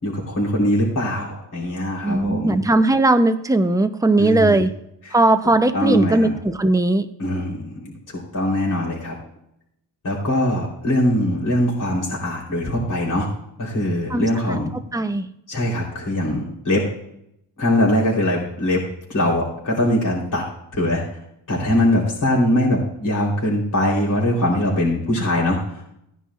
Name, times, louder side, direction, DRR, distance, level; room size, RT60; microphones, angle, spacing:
voice 1, 0.0-2.6 4.2-4.7 5.0-5.2 5.7-6.3 7.2-9.1 10.0-13.3 13.6-14.7 15.5-16.9 17.6-18.8 19.1-20.4 20.7-21.0 21.5-25.9, left 1 dB, 40° left, -4 dB, 3.5 m, -22 dB
voice 2, 2.0-4.7 5.1-7.1 14.1-14.6 14.9-15.3, right 2 dB, 5° right, 8 dB, 0.6 m, -18 dB
16.0 x 10.0 x 2.5 m, 0.78 s
cardioid pair, 95°, 48 cm